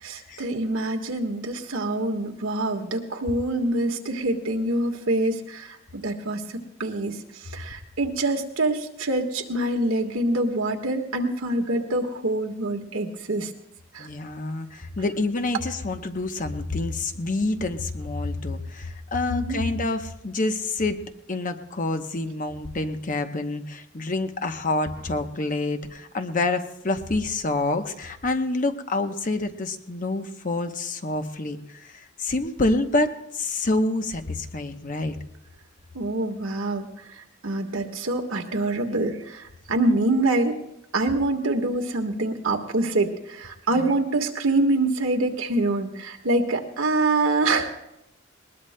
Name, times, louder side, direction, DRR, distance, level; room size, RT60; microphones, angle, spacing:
voice 1, 0.0-13.5 13.9-14.1 19.3-19.6 35.9-40.6 40.9-47.7, right 2 dB, 85° right, 2 dB, 1.5 m, -25 dB
voice 2, 14.0-21.0 21.3-35.2 43.8-43.9, left 2 dB, 40° left, 7 dB, 0.8 m, -27 dB
20.5 x 20.0 x 2.2 m, 0.82 s
head